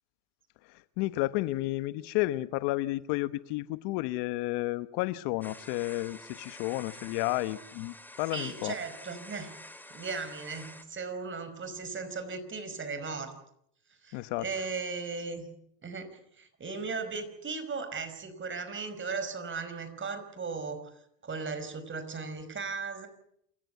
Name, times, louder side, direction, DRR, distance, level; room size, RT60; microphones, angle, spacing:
voice 1, 1.0-8.7 14.1-14.4, left 18 dB, 75° left, 14 dB, 1.1 m, -31 dB
sound 1, 5.4-10.8, left 1 dB, 5° left, 2.6 m, -48 dB
voice 2, 8.3-9.5 9.9-13.3 13.9-15.5 15.8-20.9 21.2-23.1, right 4 dB, 30° right, 10 dB, 5.2 m, -37 dB
28.0 x 15.5 x 8.3 m, 0.71 s
supercardioid pair, 95°, 41 cm